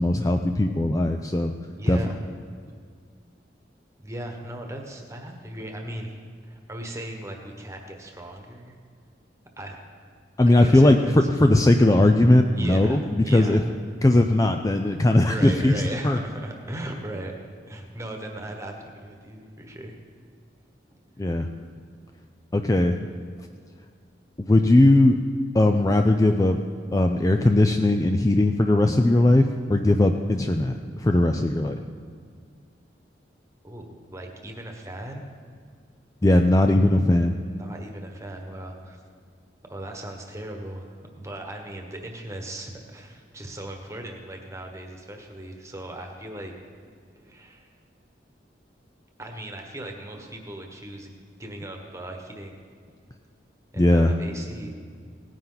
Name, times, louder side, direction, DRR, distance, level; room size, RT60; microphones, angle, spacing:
voice 1, 0.0-1.5 1.9-2.0 10.4-11.0 11.4-13.6 14.0-15.7 16.0-16.2 21.2-21.5 22.5-23.0 24.4-25.2 25.5-26.6 26.9-31.8 36.2-37.3 53.8-54.1, left 1 dB, 20° left, 6 dB, 0.4 m, -19 dB
voice 2, 1.7-2.2 4.0-6.1 6.4-8.8 9.6-9.8 10.5-11.3 12.5-13.7 15.2-17.3 17.7-20.0 33.6-35.3 37.4-39.0 39.7-46.5 47.2-47.7 49.2-51.1 51.4-52.6 53.7-54.8, right 1 dB, 15° right, 3 dB, 1.3 m, -37 dB
17.5 x 9.9 x 4.0 m, 2.1 s
head